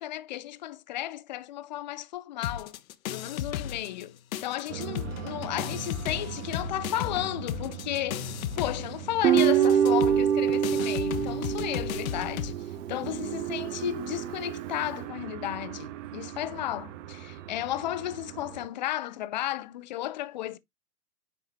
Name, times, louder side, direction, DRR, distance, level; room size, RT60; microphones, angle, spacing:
voice 1, 0.0-2.8 3.1-8.3 8.6-12.5 12.9-20.6, left 14 dB, 30° left, 0.4 m, -33 dB
sound 1, 2.4-4.1 4.3-12.5, left 10 dB, 60° left, 0.8 m, -35 dB
sound 2, 4.7-18.7, right 12 dB, 50° right, 0.7 m, -40 dB
Guitar, 9.2-12.5, right 9 dB, 85° right, 0.7 m, -24 dB
9.2 x 4.5 x 2.9 m
hypercardioid pair, 120°, 49 cm